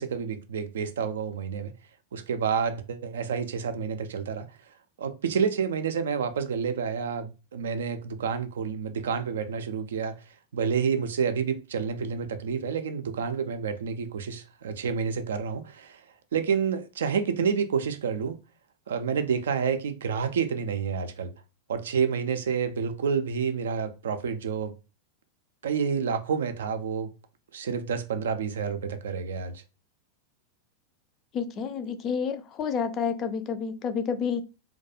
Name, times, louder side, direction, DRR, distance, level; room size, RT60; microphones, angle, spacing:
voice 1, 0.0-1.7 2.1-4.5 5.0-10.2 10.5-16.0 16.3-18.4 18.9-21.3 21.7-24.7 25.6-27.1 27.5-29.6, right 6 dB, 65° right, 0.3 m, -29 dB
voice 2, 31.3-34.4, left 6 dB, 30° left, 0.3 m, -29 dB
2.2 x 2.2 x 2.7 m
figure-of-eight pair, 90°, 0 cm